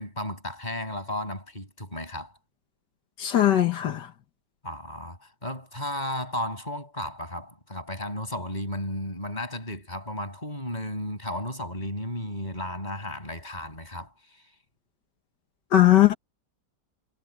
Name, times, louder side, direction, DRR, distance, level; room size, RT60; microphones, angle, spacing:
voice 1, 0.0-2.3 4.6-14.5, left 1 dB, 25° left, 8.2 m, -34 dB
voice 2, 3.2-4.1 15.7-16.1, left 13 dB, 80° left, 1.8 m, -19 dB
omnidirectional pair, 1.9 m